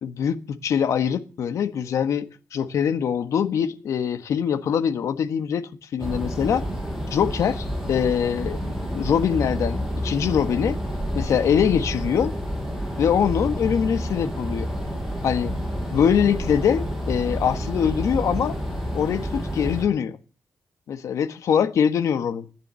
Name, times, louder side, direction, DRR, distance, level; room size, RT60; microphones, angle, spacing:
voice 1, 0.0-6.6 7.1-8.6 8.9-10.8 11.1-12.3 13.0-14.7 15.2-15.5 15.9-18.5 18.9-20.2 20.9-22.5, left 8 dB, 90° left, 10 dB, 1.5 m, -23 dB
sound 1, 6.0-19.9, equal, 5° right, 6.8 m, -29 dB
15.0 x 10.5 x 7.6 m, 0.37 s
wide cardioid pair, 120°, 5 cm